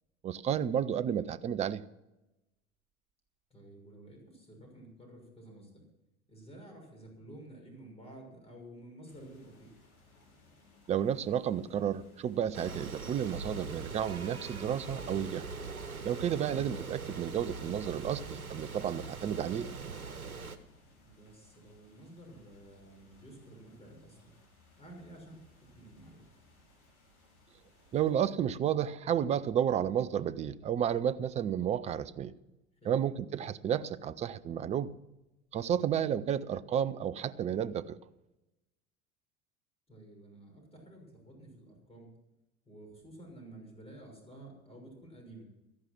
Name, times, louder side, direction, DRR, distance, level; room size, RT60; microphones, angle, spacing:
voice 1, 0.2-1.8 10.9-15.4 16.0-19.7 27.9-32.3 32.9-34.9 35.5-38.0, right 9 dB, 15° right, 0.4 m, -31 dB
voice 2, 3.5-5.8 6.3-9.7 21.0-24.2 24.8-25.5 25.7-26.3 32.8-33.0 39.9-42.1 42.6-45.5, right 1 dB, 15° left, 6.3 m, -52 dB
sound 1, 9.0-28.1, left 2 dB, 80° left, 4.4 m, -63 dB
sound 2, 12.5-20.6, right 4 dB, 85° right, 1.0 m, -42 dB
14.0 x 11.5 x 6.1 m
figure-of-eight pair, 80°, 42 cm